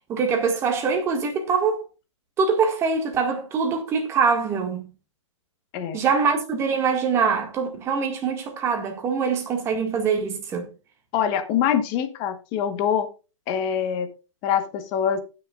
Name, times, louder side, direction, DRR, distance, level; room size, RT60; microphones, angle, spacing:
voice 1, 0.1-1.8 2.4-4.8 5.9-10.6, right 5 dB, 15° right, 1.8 m, -23 dB
voice 2, 11.1-13.1 13.5-14.1 14.4-15.2, left 8 dB, 25° left, 1.2 m, -24 dB
19.0 x 6.6 x 2.4 m
hypercardioid pair, 160°, 16 cm